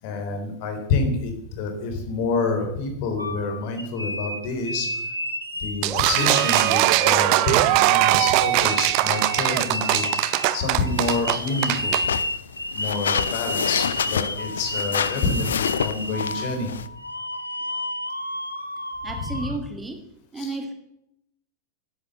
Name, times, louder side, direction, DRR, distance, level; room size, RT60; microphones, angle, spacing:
voice 1, 0.0-4.9 5.6-10.0 10.5-12.0 12.7-16.7 19.2-19.5 20.4-20.6, left 3 dB, 45° left, 5 dB, 3.7 m, -28 dB
sound 1, 3.2-5.8 6.2-19.6, left 1 dB, 85° left, 1.2 m, -32 dB
sound 2, 5.8-12.0, right 17 dB, 45° right, 0.7 m, -20 dB
sound 3, 10.7-16.9, left 8 dB, 65° left, 0.6 m, -29 dB
voice 2, 19.0-20.0 20.3-20.7, right 2 dB, 10° right, 4 dB, 2.1 m, -32 dB
11.0 x 11.0 x 7.7 m, 0.79 s
figure-of-eight pair, 90°, 0 cm